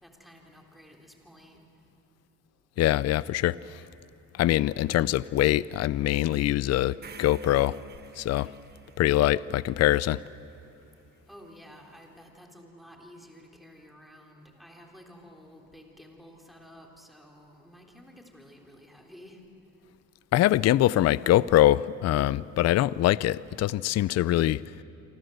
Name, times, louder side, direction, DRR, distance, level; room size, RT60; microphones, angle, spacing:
voice 1, 0.0-1.6 11.3-19.4, equal, ahead, 1 dB, 3.7 m, -51 dB
voice 2, 2.8-3.8 4.3-7.8 8.2-8.5 9.0-10.2 20.3-24.6, left 14 dB, 50° left, 19 dB, 0.5 m, -23 dB
sound 1, 7.0-11.2, right 6 dB, 30° right, 1.2 m, -51 dB
29.0 x 24.5 x 7.9 m, 2.8 s
cardioid pair, 135°, 34 cm